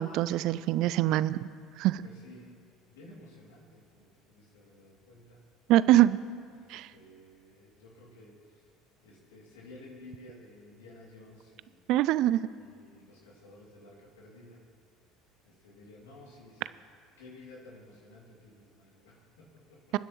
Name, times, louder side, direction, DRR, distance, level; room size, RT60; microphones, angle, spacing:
voice 1, 0.0-1.4 1.8-2.0 5.7-6.2 6.7-6.9 11.9-12.5 19.9-20.0, right 14 dB, 60° right, 17 dB, 0.3 m, -24 dB
voice 2, 2.0-5.5 6.5-8.7 9.0-11.9 12.6-14.7 15.4-16.8 17.2-20.0, left 2 dB, 80° left, -3 dB, 2.6 m, -53 dB
25.5 x 10.0 x 3.1 m, 2.2 s
hypercardioid pair, 70°, 0 cm